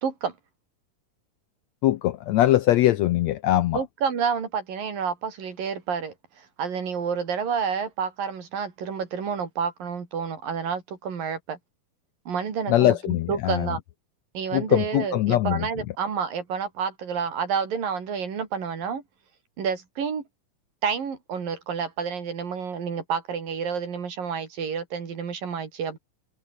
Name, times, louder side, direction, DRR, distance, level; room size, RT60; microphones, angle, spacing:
voice 1, 0.0-0.3 3.7-11.6 12.3-13.8 14.3-19.0 19.6-20.2 20.8-26.0, right 6 dB, 90° right, 5.6 m, -29 dB
voice 2, 1.8-3.8 12.7-13.7 14.5-15.7, left 14 dB, 80° left, 1.6 m, -21 dB
omnidirectional pair, 3.8 m